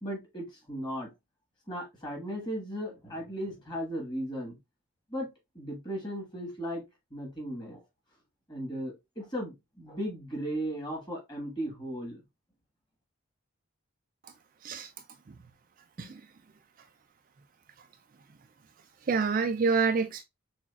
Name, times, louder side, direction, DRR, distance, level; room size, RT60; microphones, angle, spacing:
voice 1, 0.0-1.1 1.7-4.6 5.1-5.3 5.5-6.8 7.1-7.8 8.5-12.2, equal, 20° left, 1.5 m, -36 dB
voice 2, 19.1-20.2, right 5 dB, 40° right, 0.3 m, -27 dB
6.0 x 2.4 x 2.3 m
head